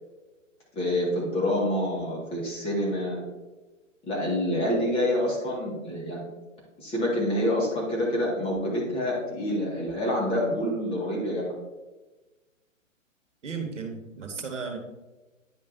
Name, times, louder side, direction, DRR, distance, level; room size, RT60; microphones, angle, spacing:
voice 1, 0.7-3.2 4.1-6.2 6.8-11.5, left 1 dB, 15° left, -4 dB, 1.9 m, -27 dB
voice 2, 13.4-14.8, right 5 dB, 65° right, 5 dB, 1.3 m, -34 dB
9.9 x 5.3 x 2.7 m, 1.1 s
figure-of-eight pair, 125°, 39 cm